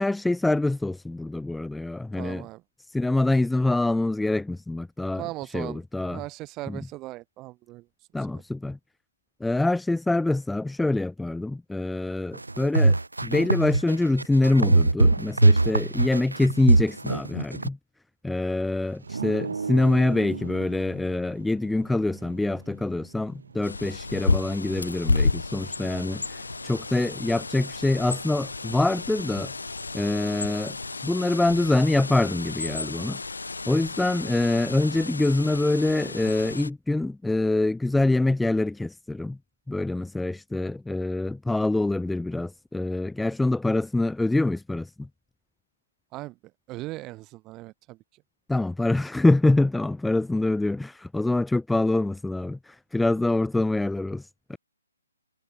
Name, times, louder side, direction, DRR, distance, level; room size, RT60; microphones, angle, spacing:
voice 1, 0.0-2.4 2.8-5.2 5.5-6.2 6.7-6.8 8.1-8.8 9.4-17.8 18.2-29.5 29.9-30.8 31.0-33.2 33.7-39.4 39.7-45.1 48.5-54.6, left 2 dB, 5° left, 0.3 m, -25 dB
voice 2, 2.2-2.6 5.1-8.4 46.1-46.4 46.7-48.2, right 19 dB, 20° right, 4.4 m, -39 dB
sound 1, 12.3-17.7, right 2 dB, 80° right, 0.4 m, -20 dB
sound 2, 19.0-31.8, right 5 dB, 65° right, 1.9 m, -42 dB
Bird, 23.6-36.7, left 3 dB, 70° left, 1.3 m, -32 dB
figure-of-eight pair, 135°, 0 cm